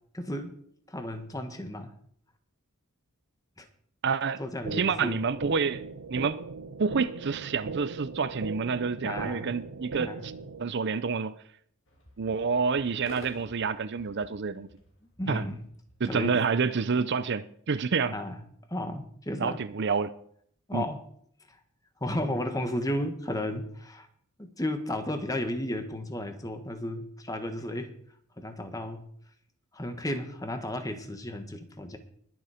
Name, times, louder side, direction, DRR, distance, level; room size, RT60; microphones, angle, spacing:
voice 1, 0.1-0.5 0.9-1.9 3.6-3.7 4.4-5.3 9.0-9.5 10.0-10.2 15.2-15.6 16.0-16.4 18.1-18.4 18.7-19.6 20.7-21.0 21.5-21.6 22.0-24.1 24.4-27.9 28.4-29.1 29.7-32.0, left 1 dB, 15° left, 1.5 m, -33 dB
voice 2, 4.0-4.4 4.7-6.4 6.8-10.3 10.6-11.3 12.2-14.7 15.3-15.5 16.0-18.1 19.4-20.1 20.7-20.8, right 5 dB, 50° right, 0.5 m, -28 dB
sound 1, 4.7-10.7, right 4 dB, 80° right, 0.8 m, -39 dB
sound 2, 11.9-16.7, left 1 dB, 60° left, 3.5 m, -51 dB
21.0 x 7.1 x 5.0 m
head